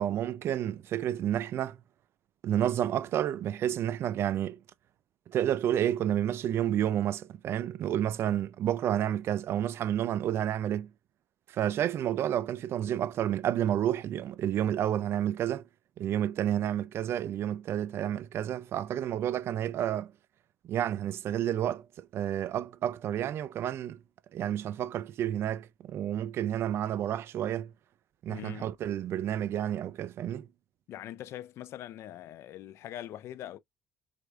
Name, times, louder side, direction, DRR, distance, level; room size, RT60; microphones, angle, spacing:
voice 1, 0.0-1.8 2.4-4.6 5.3-10.9 11.5-15.6 16.0-20.1 20.6-24.0 24.3-27.7 28.2-30.5, right 11 dB, 45° right, 0.3 m, -30 dB
voice 2, 28.3-28.7 30.9-33.6, left 12 dB, 50° left, 0.4 m, -42 dB
4.9 x 3.4 x 2.3 m
figure-of-eight pair, 55°, 6 cm